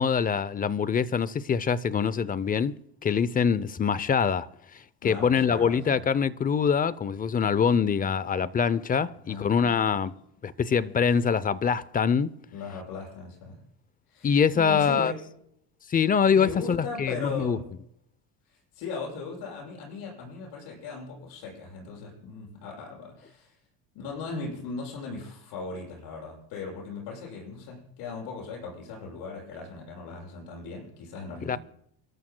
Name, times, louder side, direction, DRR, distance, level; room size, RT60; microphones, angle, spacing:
voice 1, 0.0-2.7 3.0-4.5 5.0-10.1 10.4-12.3 14.2-15.1 15.9-17.6 31.5-31.6, left 6 dB, 20° left, 0.6 m, -24 dB
voice 2, 5.0-6.1 9.1-9.6 12.5-13.6 14.1-15.2 16.3-17.7 18.5-23.6 23.9-31.6, left 4 dB, 75° left, 7.5 m, -38 dB
29.5 x 13.0 x 2.2 m
cardioid pair, 115°, 42 cm